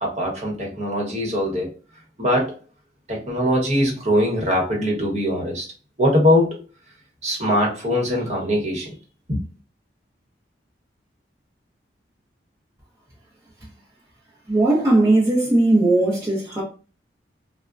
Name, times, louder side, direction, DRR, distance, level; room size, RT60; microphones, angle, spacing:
voice 1, 0.0-1.7 2.2-2.6 3.1-5.6 6.0-6.6 7.2-8.9 9.3-9.4, equal, 35° right, 1.1 m, -21 dB
voice 2, 14.5-16.6, right 2 dB, 20° right, 0.8 m, -18 dB
3.4 x 2.2 x 2.5 m
head